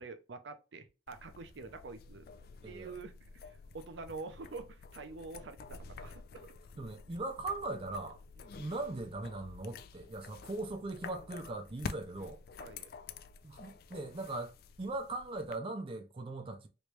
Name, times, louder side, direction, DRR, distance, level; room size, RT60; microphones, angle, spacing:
voice 1, 0.0-2.3 2.6-3.1 3.4-6.5 8.4-8.6 12.6-12.9, right 3 dB, 75° right, 0.6 m, -46 dB
sound 1, 1.1-15.6, left 5 dB, 55° left, 0.3 m, -49 dB
voice 2, 2.6-2.9 6.8-8.2 8.5-12.4 13.4-16.7, right 2 dB, 30° right, 0.4 m, -40 dB
3.2 x 3.0 x 3.1 m
head